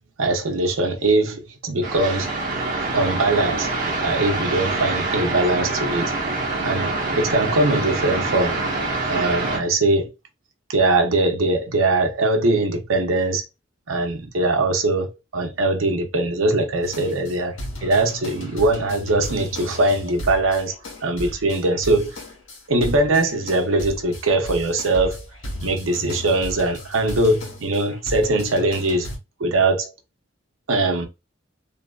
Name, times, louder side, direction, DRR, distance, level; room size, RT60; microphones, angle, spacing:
voice 1, 0.2-2.3 2.9-6.1 6.6-8.6 9.1-10.1 10.7-13.4 13.9-20.8 21.0-22.2 22.7-25.2 25.6-29.1 29.4-29.9 30.7-31.1, right 2 dB, 85° right, 0.6 m, -21 dB
sound 1, 1.8-9.6, right 3 dB, 40° right, 0.8 m, -25 dB
sound 2, 16.8-29.2, left 1 dB, 85° left, 1.3 m, -35 dB
2.6 x 2.5 x 2.3 m
head